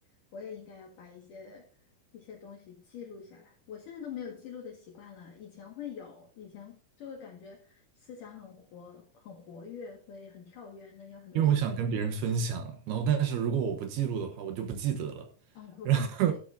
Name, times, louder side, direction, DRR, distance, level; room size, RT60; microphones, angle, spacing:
voice 1, 0.3-1.7 2.1-11.5 15.5-16.4, left 7 dB, 55° left, 3.2 m, -45 dB
voice 2, 11.3-15.3 15.8-16.3, right 8 dB, 75° right, 3.1 m, -28 dB
13.0 x 12.0 x 2.7 m
omnidirectional pair, 4.7 m